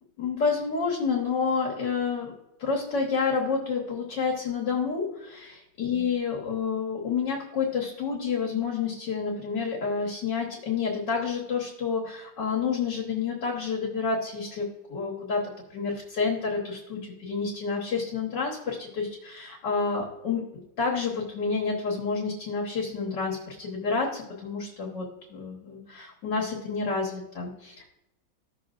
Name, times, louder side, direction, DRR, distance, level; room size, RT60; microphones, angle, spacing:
voice 1, 0.2-2.3 2.6-5.1 5.8-20.4 20.8-27.9, left 5 dB, 65° left, -2 dB, 2.0 m, -29 dB
15.0 x 6.3 x 2.5 m, 0.91 s
omnidirectional pair, 2.1 m